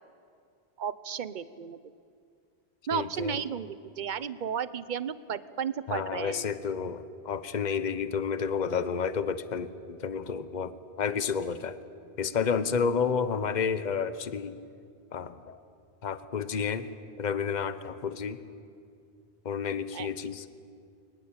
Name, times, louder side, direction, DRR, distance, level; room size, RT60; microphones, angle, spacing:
voice 1, 0.8-1.8 2.9-6.5 19.9-20.1, right 8 dB, 50° right, 15 dB, 0.8 m, -34 dB
voice 2, 2.9-3.3 5.9-10.7 11.0-11.8 12.2-14.6 15.1-15.6 16.0-16.9 17.2-18.4 19.4-20.4, left 6 dB, 45° left, 12 dB, 1.0 m, -30 dB
22.5 x 20.0 x 8.8 m, 2.4 s
omnidirectional pair, 1.1 m